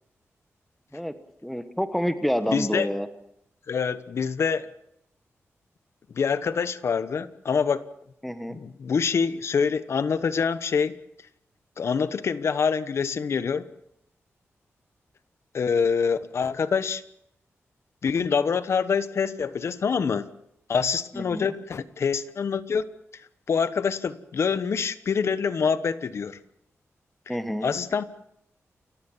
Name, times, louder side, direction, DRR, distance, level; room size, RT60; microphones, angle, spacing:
voice 1, 1.4-3.1 8.2-8.6 21.1-21.5 27.3-27.7, equal, ahead, 10 dB, 1.2 m, -28 dB
voice 2, 2.5-2.9 3.7-4.7 6.1-7.8 8.5-11.0 11.8-13.7 15.5-17.0 18.0-20.3 20.7-22.9 23.5-26.4 27.3-27.4 27.6-28.0, left 6 dB, 60° left, 14 dB, 1.1 m, -25 dB
29.0 x 15.0 x 7.3 m, 0.76 s
wide cardioid pair, 155°, 5 cm